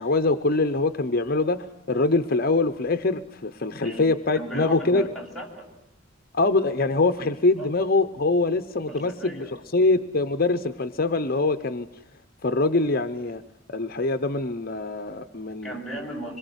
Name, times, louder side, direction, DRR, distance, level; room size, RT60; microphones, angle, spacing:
voice 1, 0.0-5.1 6.3-9.5 9.7-11.9 12.4-13.4 13.7-15.8, left 3 dB, 50° left, 8 dB, 0.9 m, -24 dB
voice 2, 3.8-5.7 7.6-7.7 8.9-9.6 15.5-16.4, right 1 dB, ahead, -3 dB, 7.3 m, -37 dB
26.0 x 22.5 x 8.2 m, 0.86 s
head